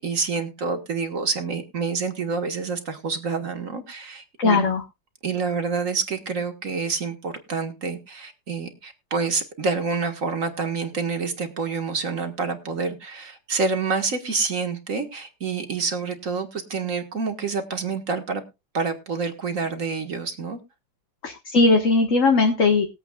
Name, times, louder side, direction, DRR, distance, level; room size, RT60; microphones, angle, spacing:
voice 1, 0.0-4.6 5.2-18.4 18.7-20.6, right 4 dB, 45° right, 1.8 m, -27 dB
voice 2, 4.4-4.8 21.2-22.9, left 3 dB, 45° left, 1.8 m, -19 dB
22.0 x 8.2 x 2.4 m
omnidirectional pair, 2.1 m